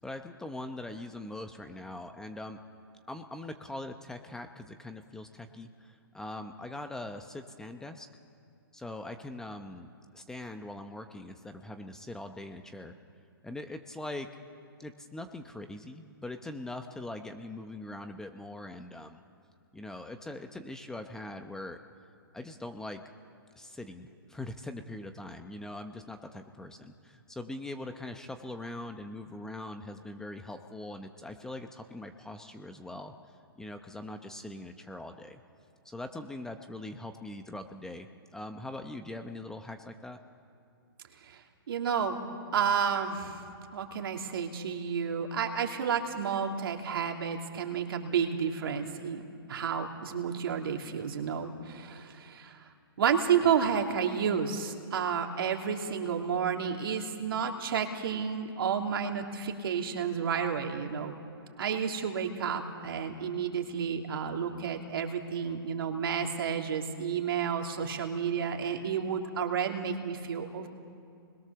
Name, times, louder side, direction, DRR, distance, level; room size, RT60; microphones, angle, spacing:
voice 1, 0.0-2.6 3.1-8.1 8.7-12.9 13.4-14.3 14.8-19.2 19.7-21.8 22.3-23.0 23.6-33.1 33.6-35.4 35.8-40.2, left 2 dB, 5° left, 7 dB, 0.8 m, -42 dB
voice 2, 41.7-42.2 42.5-43.4 43.7-49.2 49.5-52.6 53.0-61.1 61.6-70.7, right 7 dB, 65° right, 3 dB, 2.8 m, -31 dB
28.0 x 21.0 x 6.9 m, 2.4 s
hypercardioid pair, 155°, 13 cm